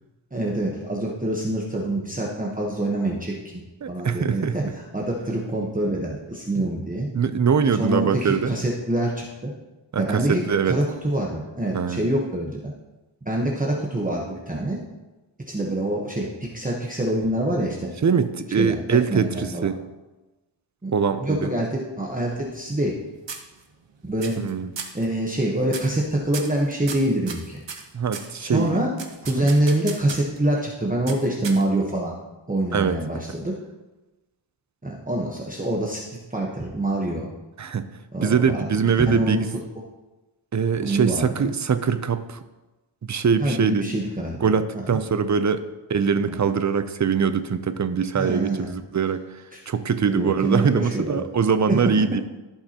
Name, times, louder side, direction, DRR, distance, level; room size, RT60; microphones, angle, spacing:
voice 1, 0.3-3.6 3.9-7.1 7.7-9.5 10.0-12.7 13.2-14.8 15.5-17.9 18.6-19.7 20.8-20.9 21.2-23.0 24.0-24.3 24.9-27.6 28.4-28.9 29.2-32.1 32.5-33.5 34.8-37.3 38.1-39.4 40.8-41.5 43.4-44.4 44.9-45.0 46.3-46.4 48.1-48.7 49.5-49.6 50.0-51.2 51.7-51.8, right 1 dB, 15° right, -2 dB, 1.1 m, -25 dB
voice 2, 3.8-4.7 7.1-8.6 9.9-10.8 11.7-12.1 18.0-19.8 20.9-21.5 24.4-24.7 27.9-28.8 29.4-29.5 32.7-33.0 37.6-37.9 38.2-39.5 40.5-42.4 43.0-43.8 44.4-45.6 45.9-49.2 49.7-52.2, right 6 dB, 40° right, 11 dB, 0.6 m, -22 dB
sound 1, 22.1-23.0 23.3-23.9 24.2-24.5 24.8-25.1 25.7-26.0 26.3-28.3 29.0-30.4 31.1-31.9, right 5 dB, 65° right, 1.1 m, -36 dB
15.0 x 5.7 x 2.9 m, 1.1 s
wide cardioid pair, 90°, 47 cm